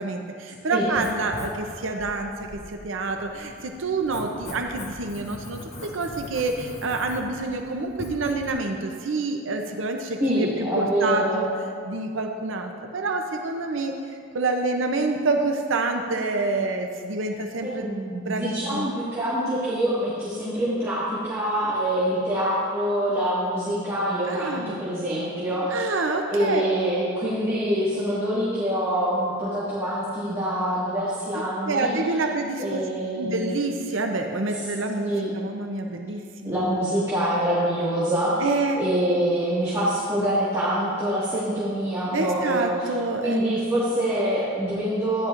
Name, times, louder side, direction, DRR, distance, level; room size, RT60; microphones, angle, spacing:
voice 1, 0.0-10.5 10.7-11.5 11.8-13.9 14.3-17.9 18.1-18.9 24.3-24.8 25.7-26.6 31.7-32.8 33.1-36.5 38.4-38.8 42.1-43.4, right 3 dB, 70° right, 3 dB, 0.7 m, -27 dB
Writing, 0.8-8.5, left 1 dB, 35° left, 1.3 m, -41 dB
voice 2, 10.2-11.5 17.6-25.8 26.3-32.0 32.6-33.6 35.0-35.3 36.4-38.5 38.8-42.9 43.2-45.3, right 1 dB, 15° right, -10 dB, 1.8 m, -25 dB
14.0 x 10.0 x 2.5 m, 2.2 s
head